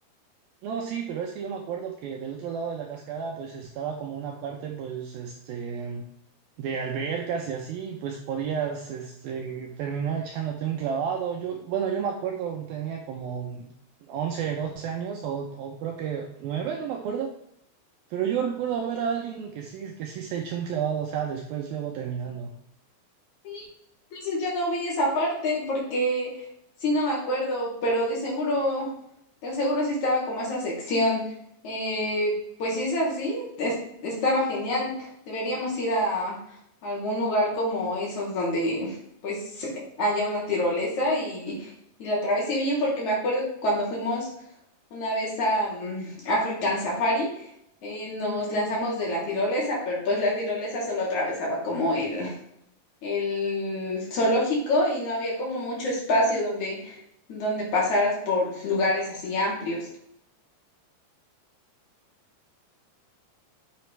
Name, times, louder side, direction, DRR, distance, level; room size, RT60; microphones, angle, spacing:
voice 1, 0.6-6.1 6.6-13.7 14.1-17.3 18.1-22.5, right 7 dB, 80° right, 2 dB, 2.2 m, -31 dB
voice 2, 24.1-26.3 26.8-28.9 29.4-31.2 31.6-32.3 32.6-36.4 36.8-39.0 39.2-39.7 40.0-41.7 42.0-44.3 44.9-47.5 47.8-52.4 53.0-57.0 57.3-59.9, left 1 dB, 45° left, -4 dB, 4.1 m, -26 dB
9.2 x 8.1 x 3.3 m, 0.74 s
omnidirectional pair, 5.2 m